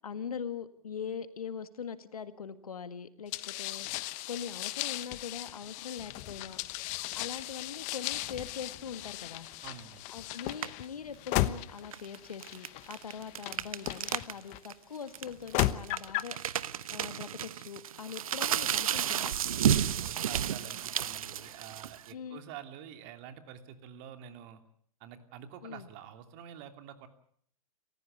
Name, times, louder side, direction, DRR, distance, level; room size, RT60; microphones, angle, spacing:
voice 1, 0.0-6.6 7.1-9.5 10.1-16.4 16.9-19.4 22.1-22.4 25.6-25.9, left 7 dB, 85° left, 11 dB, 1.8 m, -42 dB
sound 1, 3.3-14.6 15.3-16.4, left 17 dB, 40° left, 1.1 m, -36 dB
voice 2, 9.6-10.0 19.8-24.6 25.0-27.1, right 9 dB, 45° right, 7 dB, 2.9 m, -48 dB
sound 2, 10.5-10.8 11.8-14.3 14.6-14.7 15.1-22.1, right 9 dB, 75° right, 1.0 m, -32 dB
29.0 x 15.0 x 8.1 m, 0.62 s
hypercardioid pair, 105°, 18 cm